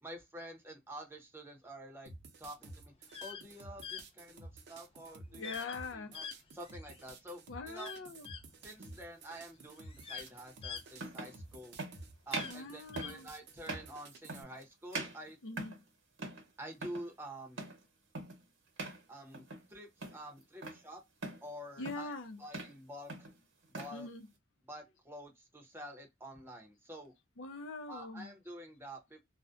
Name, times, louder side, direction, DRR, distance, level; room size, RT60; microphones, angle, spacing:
voice 1, 0.0-2.1 2.4-2.9 3.2-5.5 5.9-8.0 8.6-11.8 12.3-15.4 16.6-17.6 19.1-21.0 21.4-23.3 23.7-24.1 24.6-27.1 27.9-29.2, right 1 dB, 10° right, 0.7 m, -48 dB
sound 1, 2.1-14.4, right 2 dB, 60° right, 0.6 m, -52 dB
sound 2, 3.0-3.4 3.8-4.0 5.4-5.8 6.1-7.0 7.7-8.4 9.3-9.4 9.8-11.6 12.2-13.1, left 7 dB, 30° left, 0.3 m, -45 dB
voice 2, 5.3-6.1 7.5-8.3 12.5-13.3 15.4-15.7 21.8-22.4 23.9-24.2 27.4-28.3, left 3 dB, 80° left, 0.5 m, -43 dB
sound 3, 8.7-8.9 10.3-10.4 10.9-11.4 11.8-12.0 12.3-12.6 13.0-13.2 13.6-13.9 14.3-14.6 14.9-15.9 16.2-16.5 16.7-17.1 17.6-17.8 18.1-18.4 18.8-19.0 19.3-19.7 20.0-20.8 21.2-21.5 21.8-22.1 22.4-22.8 23.1-24.0, right 3 dB, 80° right, 0.9 m, -42 dB
2.4 x 2.1 x 2.4 m
head